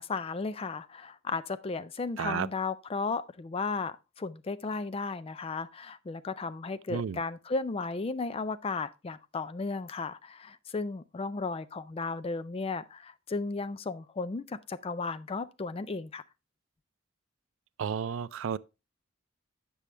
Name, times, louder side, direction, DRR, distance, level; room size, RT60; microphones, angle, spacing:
voice 1, 0.0-16.2, left 4 dB, 30° left, 0.4 m, -35 dB
voice 2, 17.8-18.6, right 7 dB, 80° right, 0.4 m, -32 dB
8.4 x 6.2 x 3.2 m
head